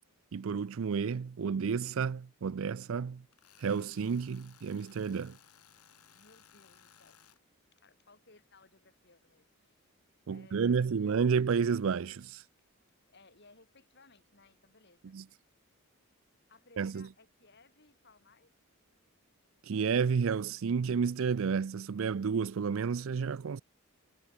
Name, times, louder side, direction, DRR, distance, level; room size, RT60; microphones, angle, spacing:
voice 1, 0.3-3.2 3.6-5.4 10.3-12.4 15.1-15.2 16.8-17.1 19.6-23.6, right 6 dB, 65° right, 0.4 m, -31 dB
Tools, 3.3-7.4, left 8 dB, 90° left, 4.8 m, -61 dB
voice 2, 6.1-7.2 7.7-9.8 10.3-11.1 13.1-15.2 16.5-18.5, left 3 dB, 50° left, 3.5 m, -62 dB
head